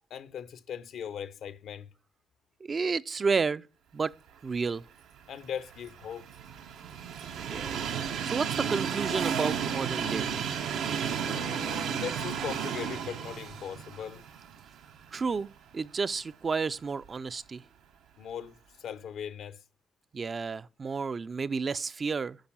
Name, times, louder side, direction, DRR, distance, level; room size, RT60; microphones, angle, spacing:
voice 1, 0.1-1.9 5.3-6.3 11.2-14.2 18.2-19.6, left 8 dB, 75° left, 0.6 m, -39 dB
voice 2, 2.6-3.6 3.9-4.1 4.4-4.9 7.5-7.8 8.2-10.5 15.1-15.5 15.7-17.6 20.1-22.4, right 5 dB, 35° right, 0.4 m, -31 dB
Train, 5.3-15.4 15.9-16.0 17.1-17.2, right 7 dB, 85° right, 0.8 m, -33 dB
8.8 x 5.3 x 7.2 m
cardioid pair, 90°, 0 cm